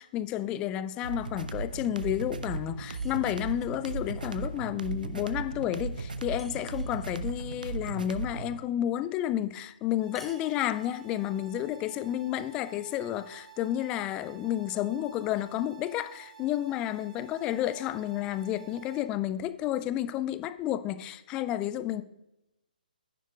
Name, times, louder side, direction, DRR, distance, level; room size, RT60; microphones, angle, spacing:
voice 1, 0.0-22.0, left 12 dB, 15° left, 0.3 m, -31 dB
sound 1, 1.0-8.6, right 3 dB, 60° right, 0.7 m, -36 dB
sound 2, 2.9-3.8 6.4-7.2 10.1-11.1, equal, ahead, 0.7 m, -54 dB
sound 3, 10.0-19.0, right 10 dB, 45° right, 2.9 m, -52 dB
11.0 x 10.0 x 2.3 m
figure-of-eight pair, 135°, 5 cm